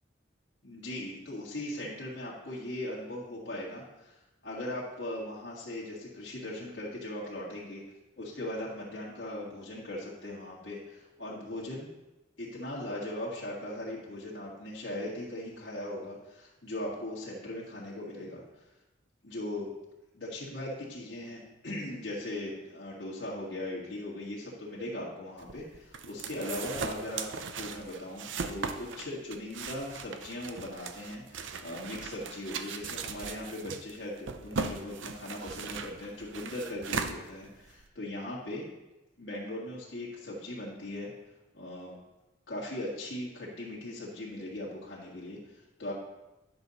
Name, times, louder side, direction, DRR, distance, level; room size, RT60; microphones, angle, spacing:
voice 1, 0.6-7.8 8.2-11.9 12.4-18.4 19.2-19.7 20.1-27.3 27.5-38.7 39.2-41.1 41.5-42.0 42.5-45.9, left 1 dB, 75° left, -6 dB, 1.8 m, -39 dB
sound 1, 25.4-37.9, right 5 dB, 75° right, 0.6 m, -38 dB
10.5 x 6.2 x 4.1 m, 1.0 s
head